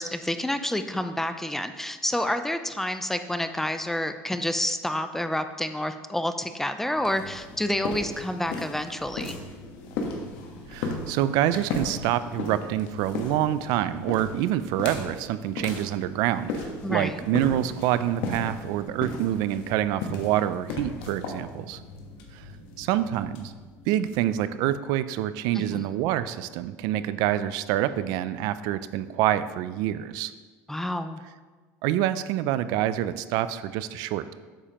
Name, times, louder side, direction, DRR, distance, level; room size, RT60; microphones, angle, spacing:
voice 1, 0.0-9.4 16.8-17.2 25.5-25.8 30.7-31.2, left 1 dB, 5° left, 9 dB, 0.4 m, -29 dB
sound 1, 6.9-24.5, left 3 dB, 80° left, 1.2 m, -36 dB
voice 2, 10.7-21.8 22.3-22.5 22.8-23.5 23.9-30.3 31.8-34.3, right 12 dB, 70° right, 14 dB, 0.4 m, -26 dB
8.7 x 7.0 x 2.9 m, 1.4 s
cardioid pair, 135°, 7 cm